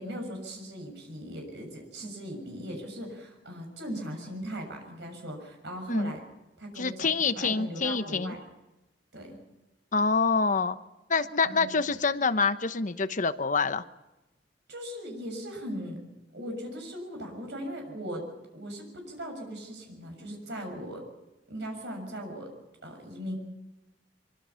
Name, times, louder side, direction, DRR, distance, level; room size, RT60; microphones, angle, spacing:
voice 1, 0.0-6.2 6.6-8.5 9.1-9.4 11.5-12.0 14.7-16.0 16.3-18.2 18.5-21.0 21.5-22.5 22.8-23.3, equal, 70° right, 3 dB, 7.0 m, -39 dB
voice 2, 6.8-8.3 9.9-10.8 11.1-13.8, left 4 dB, 45° left, 11 dB, 1.0 m, -26 dB
24.0 x 23.5 x 5.8 m, 1.0 s
head